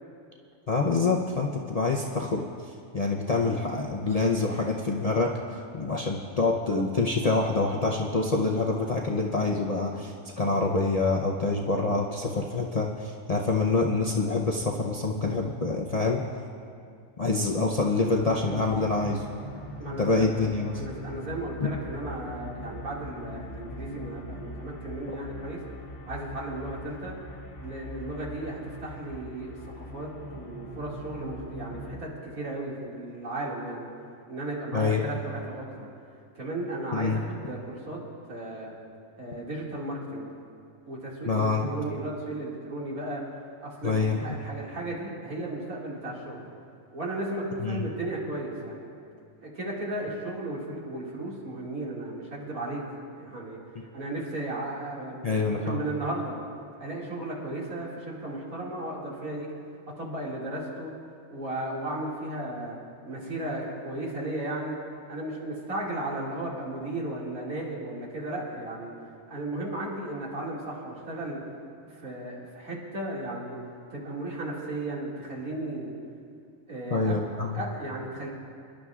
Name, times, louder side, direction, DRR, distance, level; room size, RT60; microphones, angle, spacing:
voice 1, 0.7-16.2 17.2-19.3 20.0-20.8 21.6-21.7 34.7-35.0 36.9-37.2 41.2-41.7 43.8-44.2 47.6-47.8 55.2-55.8 76.9-77.6, left 3 dB, 40° left, -2 dB, 0.5 m, -26 dB
sound 1, 18.1-32.0, left 1 dB, 60° left, 1.4 m, -42 dB
voice 2, 19.8-20.4 20.8-25.6 26.1-27.2 27.6-33.9 34.3-35.9 36.4-38.0 38.3-38.7 39.2-40.3 40.9-43.2 43.6-46.4 46.9-48.9 49.4-52.8 53.2-53.6 53.9-56.4 56.8-59.5 60.0-60.9 61.3-62.8 63.1-64.8 65.1-68.9 69.3-71.4 71.8-73.6 73.9-75.9 76.7-77.2 77.5-78.3, right 1 dB, 85° right, -5 dB, 2.7 m, -35 dB
26.0 x 11.0 x 2.4 m, 2.4 s
omnidirectional pair, 1.5 m